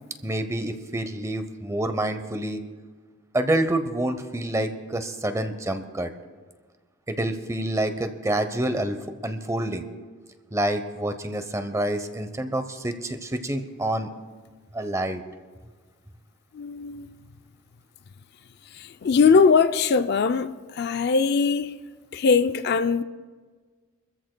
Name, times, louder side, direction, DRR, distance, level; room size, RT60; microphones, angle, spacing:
voice 1, 0.2-2.6 3.3-6.1 7.1-9.8 10.5-14.1 14.7-15.2, right 1 dB, 15° right, 0.8 m, -27 dB
voice 2, 16.5-17.1 18.8-21.8 22.1-23.0, left 5 dB, 50° left, 0.4 m, -21 dB
26.0 x 14.0 x 2.2 m
head